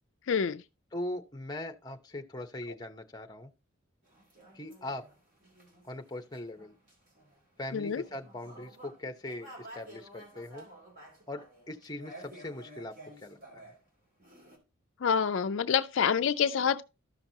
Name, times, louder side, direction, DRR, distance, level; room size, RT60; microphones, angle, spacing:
voice 1, 0.3-0.6 7.7-8.0 15.0-16.9, left 7 dB, 60° left, 0.4 m, -27 dB
voice 2, 0.9-3.5 4.5-5.0 5.8-6.7 7.6-10.7 11.3-13.6, left 1 dB, 20° left, 0.7 m, -40 dB
sound 1, 4.0-13.8 14.2-14.6, right 1 dB, 40° right, 2.7 m, -52 dB
13.0 x 5.9 x 2.7 m
head